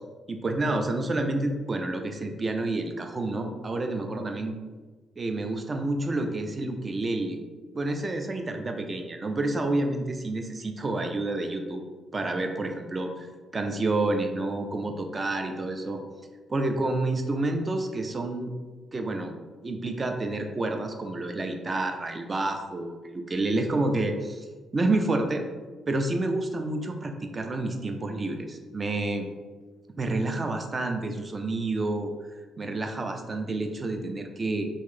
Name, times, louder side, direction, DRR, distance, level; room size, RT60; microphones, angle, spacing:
voice 1, 0.3-4.5 5.2-7.4 7.7-11.8 12.1-13.3 13.5-16.0 16.5-18.5 18.9-19.3 19.6-24.5 24.7-25.4 25.9-29.3 30.0-32.1 32.6-34.7, right 2 dB, 30° right, 5 dB, 0.4 m, -29 dB
3.0 x 2.6 x 3.8 m, 1.4 s
cardioid pair, 90°, 0 cm